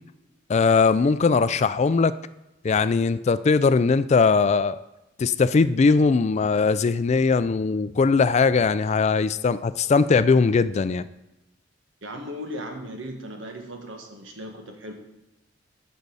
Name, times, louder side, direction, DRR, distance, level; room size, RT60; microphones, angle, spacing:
voice 1, 0.5-2.1 2.6-4.8 5.2-11.1, left 4 dB, 35° left, 15 dB, 0.3 m, -20 dB
voice 2, 12.0-14.9, equal, 90° right, 4 dB, 1.6 m, -37 dB
13.0 x 5.3 x 5.4 m, 0.93 s
head